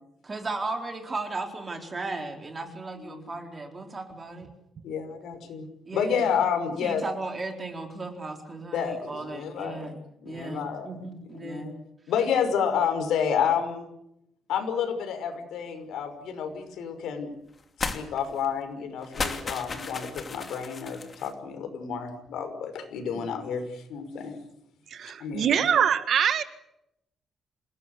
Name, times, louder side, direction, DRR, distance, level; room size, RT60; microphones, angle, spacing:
voice 1, 0.2-4.5 5.9-6.4 6.8-10.0 10.2-11.7, right 3 dB, 20° right, 4 dB, 4.3 m, -36 dB
voice 2, 4.8-5.7 5.9-7.0 8.7-9.9 10.2-10.9 11.3-11.8 12.1-13.9 14.5-17.3 17.9-24.4 25.2-25.7, left 7 dB, 80° left, 7 dB, 5.8 m, -30 dB
sound 1, 17.8-18.0 18.3-18.5 19.0-21.3, left 4 dB, 30° left, 2.8 m, -34 dB
voice 3, 24.9-26.4, right 8 dB, 50° right, 11 dB, 1.7 m, -23 dB
28.0 x 18.5 x 8.3 m, 0.81 s
cardioid pair, 165°, 0 cm